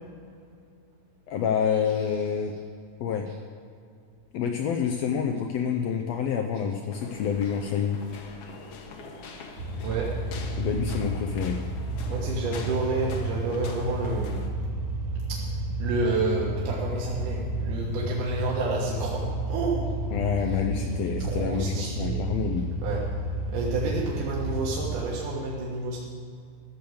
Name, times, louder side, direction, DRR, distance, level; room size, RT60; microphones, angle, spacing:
voice 1, 1.3-2.5 3.0-3.3 4.3-8.0 10.6-11.6 20.1-22.7, left 7 dB, 85° left, 3 dB, 1.5 m, -28 dB
sound 1, 6.9-14.5, left 4 dB, 60° left, 1.7 m, -43 dB
sound 2, 9.6-24.9, right 1 dB, 55° right, 1.6 m, -31 dB
voice 2, 9.8-10.2 12.1-14.4 15.3-15.4 15.8-19.9 21.2-22.2 22.8-23.1 23.5-26.0, right 3 dB, 75° right, -4 dB, 2.9 m, -29 dB
14.0 x 7.1 x 7.8 m, 2.3 s
omnidirectional pair, 3.8 m